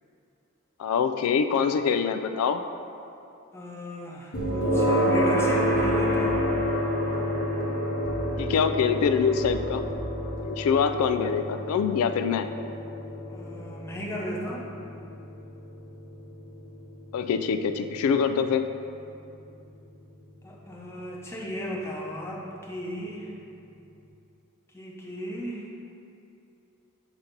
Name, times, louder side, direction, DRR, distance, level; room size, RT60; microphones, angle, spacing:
voice 1, 0.8-2.6 8.4-9.8 10.4-12.5 17.1-18.6, left 6 dB, 80° left, 13 dB, 0.3 m, -24 dB
voice 2, 3.5-6.4 13.3-14.7 20.4-23.3 24.7-25.6, equal, 10° left, -4 dB, 0.7 m, -35 dB
sound 1, 4.3-19.3, equal, 50° left, 1.1 m, -29 dB
sound 2, 4.4-5.3 5.7-7.2 8.0-9.0 9.4-10.9 11.3-11.7, right 1 dB, 15° right, 0.4 m, -40 dB
7.1 x 2.8 x 5.2 m, 2.7 s
head